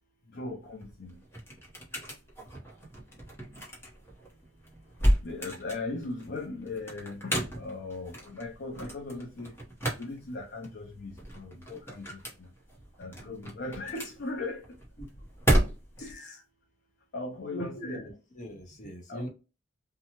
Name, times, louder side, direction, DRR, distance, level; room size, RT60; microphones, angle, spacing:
voice 1, 0.3-1.2 5.2-9.5 10.0-12.2 13.0-14.6 16.0-16.4 17.1-18.0 19.1-19.3, left 2 dB, 55° left, 0.5 m, -38 dB
sound 1, 0.6-16.1, right 1 dB, 10° left, 0.9 m, -33 dB
voice 2, 16.0-16.4 17.5-19.3, equal, 40° left, 0.9 m, -42 dB
2.7 x 2.2 x 2.9 m
head